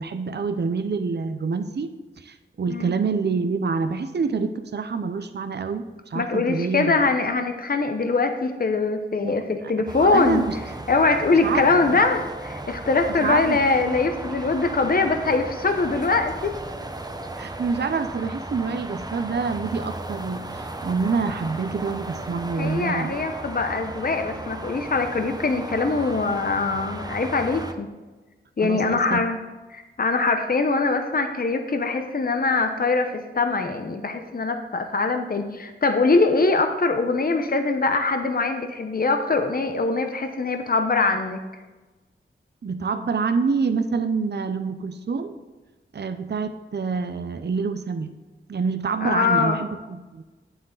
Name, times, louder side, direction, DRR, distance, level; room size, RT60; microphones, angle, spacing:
voice 1, 0.0-7.0 9.2-9.3 9.9-10.6 11.4-12.0 13.2-13.6 17.4-23.3 28.6-29.3 42.6-45.4 45.9-48.1 48.5-50.2, right 4 dB, 55° right, 9 dB, 0.6 m, -27 dB
voice 2, 6.1-10.4 10.9-16.5 22.6-27.9 28.6-29.4 29.7-41.4 49.0-49.6, left 3 dB, 45° left, 6 dB, 0.8 m, -23 dB
sound 1, 9.9-27.7, right 2 dB, 20° right, 0.8 m, -35 dB
8.7 x 7.9 x 3.9 m, 1.2 s
cardioid pair, 45°, 20 cm